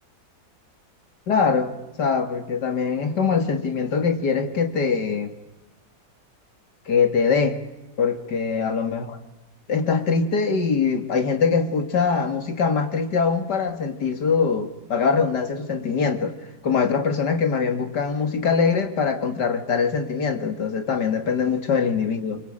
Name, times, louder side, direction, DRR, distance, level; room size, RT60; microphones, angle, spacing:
voice 1, 1.3-5.3 6.9-7.6 8.0-9.2 9.7-16.3 16.6-22.4, left 5 dB, 65° left, 8 dB, 2.6 m, -23 dB
25.5 x 23.5 x 8.9 m, 1.0 s
omnidirectional pair, 2.0 m